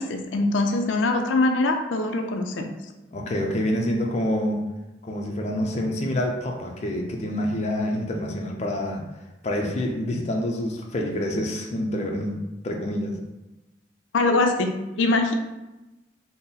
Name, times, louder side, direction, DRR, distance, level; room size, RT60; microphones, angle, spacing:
voice 1, 0.0-2.7 14.1-14.7 15.0-15.3, left 2 dB, 90° left, 4 dB, 0.4 m, -22 dB
voice 2, 3.1-4.6 5.0-9.0 9.4-13.2, left 1 dB, 35° left, 1 dB, 0.5 m, -27 dB
4.1 x 2.1 x 3.8 m, 1.0 s
head